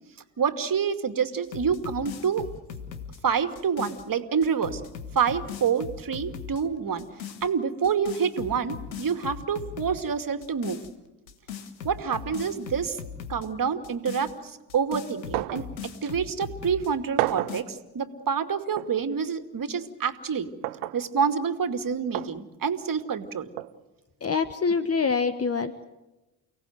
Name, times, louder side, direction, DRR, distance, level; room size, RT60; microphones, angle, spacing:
voice 1, 0.4-2.5 3.2-4.8 5.1-7.1 7.4-10.8 11.8-13.0 13.3-20.5 20.9-23.5 24.8-24.9, right 6 dB, 40° right, 8 dB, 2.5 m, -27 dB
sound 1, 1.4-4.0 4.4-6.6 7.0-7.5 7.8-10.0 10.4-10.9 11.3-13.5 13.8-16.9 17.3-17.6, left 7 dB, 90° left, 1.5 m, -39 dB
sound 2, 15.3-15.7 16.0-16.1 17.2-17.6 18.8-18.9 20.6-21.0 22.1-22.3 23.6-23.7, right 17 dB, 70° right, 1.1 m, -29 dB
voice 2, 24.2-25.8, left 5 dB, 30° left, 12 dB, 1.3 m, -25 dB
30.0 x 18.0 x 8.0 m, 1.1 s
hypercardioid pair, 50°, 49 cm